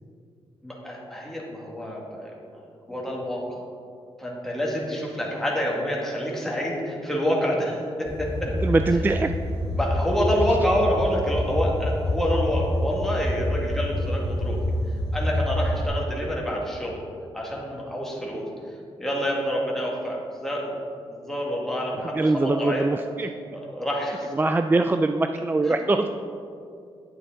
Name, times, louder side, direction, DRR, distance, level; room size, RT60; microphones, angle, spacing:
voice 1, 0.6-2.3 2.9-3.6 4.2-8.5 9.8-14.6 15.1-17.0 17.3-18.5 19.0-20.7 21.1-22.8 23.5-24.3 25.7-25.8, equal, 5° left, -4 dB, 2.1 m, -27 dB
sound 1, 8.1-15.9, left 1 dB, 40° left, 1.9 m, -27 dB
voice 2, 8.5-9.3 22.1-23.3 24.3-26.1, right 2 dB, 20° right, 7 dB, 0.3 m, -22 dB
9.6 x 7.8 x 3.9 m, 2.4 s
cardioid pair, 85°, 10 cm